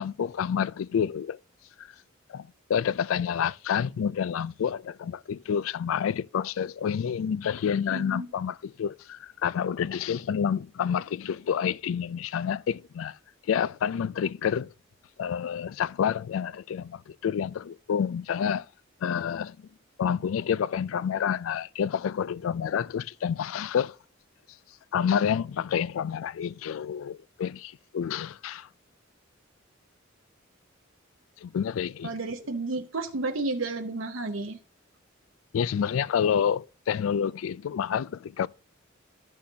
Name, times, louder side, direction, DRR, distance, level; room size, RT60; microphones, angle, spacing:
voice 1, 0.0-1.4 1.8-1.9 2.3-13.2 13.5-14.7 15.2-18.7 19.0-19.7 20.0-24.0 24.9-28.7 31.4-32.1 35.5-38.5, left 8 dB, 85° left, 0.3 m, -28 dB
voice 2, 7.9-8.3 32.0-34.6, right 3 dB, 80° right, 0.8 m, -32 dB
13.0 x 6.4 x 2.8 m
head